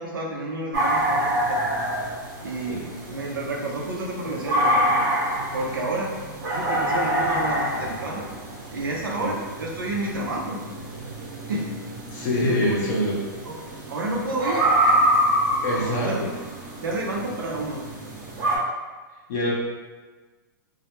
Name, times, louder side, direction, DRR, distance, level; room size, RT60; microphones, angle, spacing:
voice 1, 0.0-1.7 2.4-5.1 5.5-6.1 6.5-8.3 8.7-10.6 11.5-11.7 12.5-13.0 13.4-13.6 13.9-15.0 16.0-16.3 16.8-17.8, right 2 dB, 85° right, -1 dB, 0.6 m, -30 dB
sound 1, 0.7-18.6, right 1 dB, 55° right, 0.9 m, -26 dB
voice 2, 12.1-13.1 15.6-16.3 19.3-19.5, left 1 dB, 55° left, -4 dB, 0.7 m, -24 dB
2.2 x 2.1 x 2.9 m, 1.3 s
hypercardioid pair, 130°, 11 cm